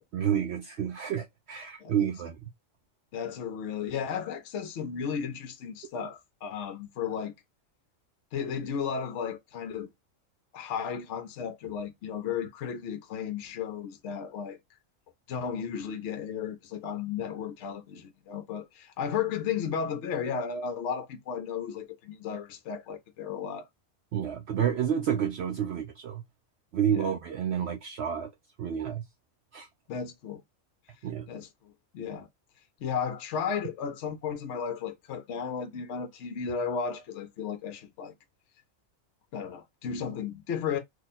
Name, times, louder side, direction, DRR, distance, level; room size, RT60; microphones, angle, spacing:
voice 1, 0.1-2.4 24.1-26.2 26.7-28.3 28.6-29.0 29.5-29.7 31.0-31.3, right 9 dB, 65° right, 0.7 m, -29 dB
voice 2, 3.1-7.3 8.3-9.9 10.5-14.6 15.3-23.7 26.9-27.1 29.9-30.4 31.3-32.3 32.8-38.1 39.3-40.8, left 7 dB, 65° left, 0.9 m, -34 dB
3.0 x 2.3 x 4.1 m
omnidirectional pair, 1.4 m